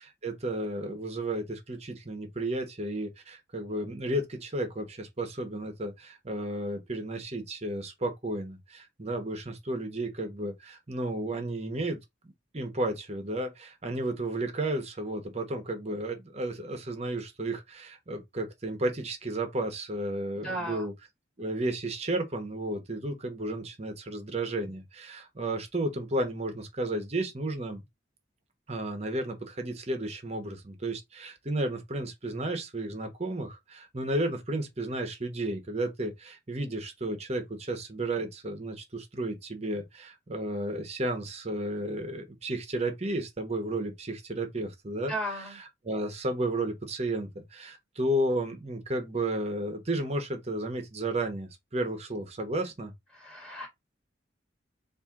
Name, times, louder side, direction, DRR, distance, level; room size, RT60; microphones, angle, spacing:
voice 1, 0.0-12.0 12.5-20.9 21.4-27.8 28.7-45.1 45.8-52.9, right 1 dB, 35° right, 1.0 m, -33 dB
voice 2, 20.4-20.9 45.1-45.6 53.1-53.7, right 1 dB, ahead, 1.4 m, -35 dB
4.3 x 2.7 x 3.6 m
head